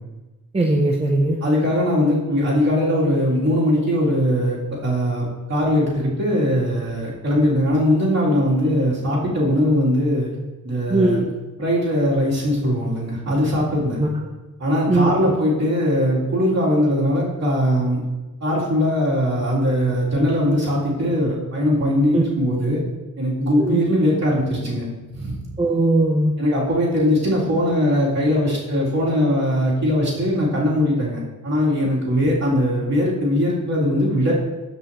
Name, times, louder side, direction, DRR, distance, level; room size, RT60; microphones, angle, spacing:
voice 1, 0.5-1.4 10.9-11.2 14.0-14.1 14.9-15.1 22.1-22.2 23.6-23.8 25.6-26.3, right 2 dB, 20° right, 0 dB, 0.6 m, -19 dB
voice 2, 1.4-10.3 10.6-11.2 11.6-14.0 14.6-18.0 18.4-22.8 23.2-24.9 25.1-25.4 26.4-34.3, equal, 50° right, -7 dB, 3.0 m, -20 dB
14.0 x 5.4 x 3.0 m, 1.1 s
wide cardioid pair, 170°, 34 cm